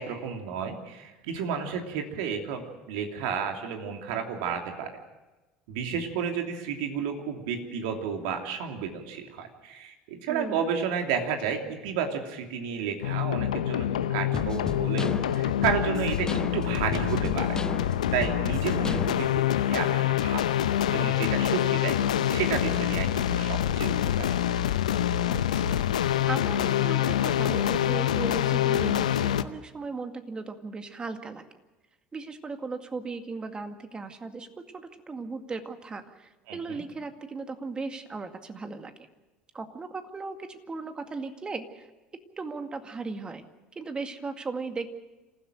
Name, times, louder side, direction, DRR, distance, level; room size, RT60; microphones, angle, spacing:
voice 1, 0.0-4.9 5.7-20.5 20.9-22.0 22.3-24.4 36.5-36.6, right 7 dB, 70° right, 4 dB, 3.0 m, -32 dB
voice 2, 10.3-10.7 25.3-31.4 32.1-34.5 34.7-39.1 39.5-41.9 42.4-43.4 43.8-44.9, right 4 dB, 25° right, 7 dB, 2.1 m, -37 dB
Swelling-Synth-Rhythm, 13.0-29.4, left 11 dB, 80° left, 0.7 m, -26 dB
sound 1, 14.3-19.5, left 3 dB, 15° left, 0.6 m, -35 dB
27.5 x 15.5 x 6.4 m, 1.1 s
hypercardioid pair, 70°, 4 cm